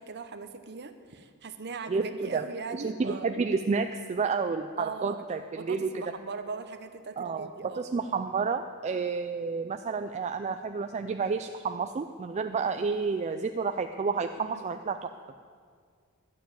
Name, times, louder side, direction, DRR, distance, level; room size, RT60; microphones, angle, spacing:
voice 1, 0.0-3.3 4.8-5.2 5.6-7.9 14.4-14.7, right 4 dB, 50° right, 9 dB, 0.8 m, -39 dB
voice 2, 1.9-2.4 2.7-5.9 7.2-7.5 7.7-15.1, right 5 dB, 30° right, 7 dB, 0.3 m, -30 dB
11.5 x 6.9 x 8.9 m, 2.1 s
head